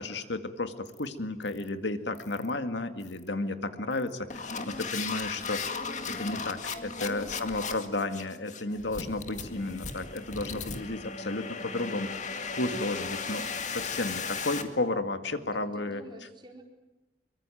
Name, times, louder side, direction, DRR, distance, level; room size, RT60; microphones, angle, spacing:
voice 1, 0.0-5.6 6.2-16.0, left 2 dB, 85° left, 8 dB, 2.1 m, -33 dB
sound 1, 0.9-1.1 1.4-1.7 2.1-2.5 3.0-3.3 3.9-14.6, left 5 dB, 45° left, 2.1 m, -36 dB
voice 2, 7.0-7.4 15.3-15.4 15.7-16.6, right 1 dB, 25° right, 2 dB, 4.5 m, -49 dB
25.0 x 23.5 x 9.2 m, 1.1 s
head